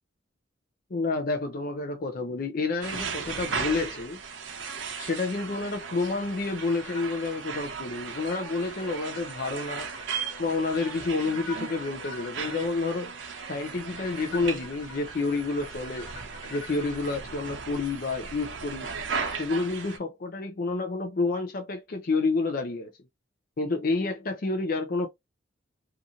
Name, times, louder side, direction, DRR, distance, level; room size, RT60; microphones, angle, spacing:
voice 1, 0.9-4.2 5.0-9.9 10.4-13.1 13.5-16.1 16.5-18.9 19.3-22.9 23.6-25.1, left 3 dB, 50° left, 0.5 m, -29 dB
sound 1, 2.8-20.0, right 5 dB, 90° right, 0.6 m, -37 dB
sound 2, 6.5-7.2 7.5-7.6 8.1-17.0, left 4 dB, 90° left, 0.8 m, -46 dB
2.8 x 2.5 x 2.4 m
head